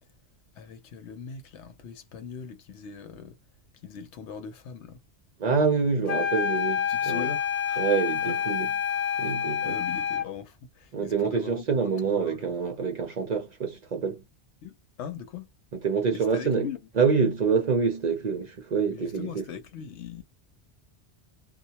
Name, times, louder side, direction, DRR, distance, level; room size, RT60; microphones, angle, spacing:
voice 1, 0.5-3.4 3.8-5.0 6.9-7.9 8.2-8.4 9.6-12.5 14.6-15.5 16.1-16.9 18.9-20.2, left 7 dB, 90° left, 0.9 m, -40 dB
voice 2, 5.4-7.3 7.8-8.7 9.2-9.7 10.9-14.2 15.8-16.7 17.0-19.4, right 5 dB, 55° right, 0.5 m, -26 dB
sound 1, 6.1-10.3, left 8 dB, 50° left, 0.5 m, -28 dB
2.2 x 2.1 x 2.7 m
omnidirectional pair, 1.1 m